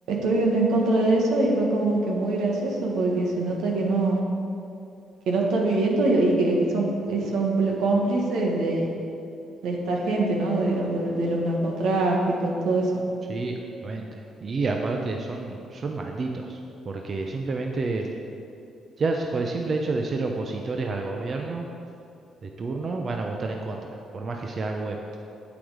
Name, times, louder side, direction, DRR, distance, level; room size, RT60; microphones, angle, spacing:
voice 1, 0.1-4.2 5.3-8.9 9.6-12.9, right 2 dB, 85° right, 0 dB, 1.6 m, -23 dB
voice 2, 13.3-18.1 19.0-21.7 22.4-25.0, right 3 dB, 45° right, 2 dB, 0.7 m, -29 dB
8.5 x 8.1 x 5.0 m, 2.6 s
cardioid pair, 90°, 0 cm